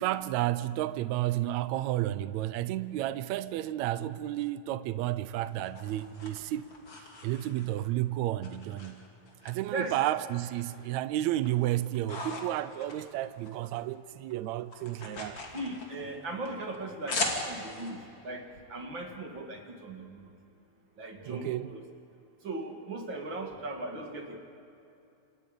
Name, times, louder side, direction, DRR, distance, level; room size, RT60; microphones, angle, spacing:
voice 1, 0.0-6.7 7.0-9.1 9.4-15.4 21.3-21.7, right 14 dB, 75° right, 1.9 m, -32 dB
sound 1, 5.1-7.9 8.4-9.5 9.8-10.9 11.2-13.8 14.1-17.9, left 2 dB, 40° left, 3.6 m, -39 dB
voice 2, 15.5-20.3 21.0-21.8 22.4-24.4, right 2 dB, 40° right, 2.6 m, -38 dB
29.5 x 28.0 x 5.3 m
omnidirectional pair, 3.4 m